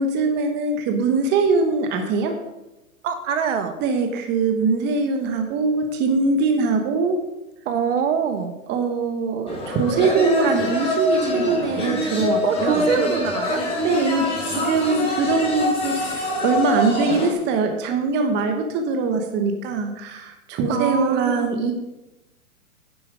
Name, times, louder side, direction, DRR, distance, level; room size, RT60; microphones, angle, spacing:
voice 1, 0.0-2.3 3.8-7.2 8.7-12.8 13.8-21.7, right 3 dB, 25° right, 5 dB, 1.2 m, -22 dB
voice 2, 3.0-3.7 7.6-8.5 12.4-13.6 20.7-21.6, right 7 dB, 55° right, 8 dB, 1.5 m, -24 dB
sound 1, 9.5-17.3, left 1 dB, 15° left, 3.3 m, -25 dB
10.5 x 7.7 x 5.1 m, 0.99 s
hypercardioid pair, 130°, 43 cm